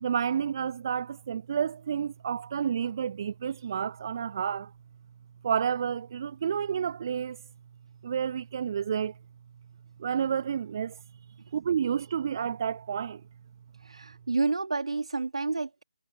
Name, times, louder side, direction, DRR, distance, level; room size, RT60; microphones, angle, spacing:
voice 1, 0.0-4.7 5.4-7.4 8.0-9.1 10.0-11.0 11.5-13.2, right 8 dB, 30° right, 0.9 m, -30 dB
voice 2, 13.8-15.8, right 3 dB, 55° right, 2.8 m, -29 dB
figure-of-eight pair, 150°, 4 cm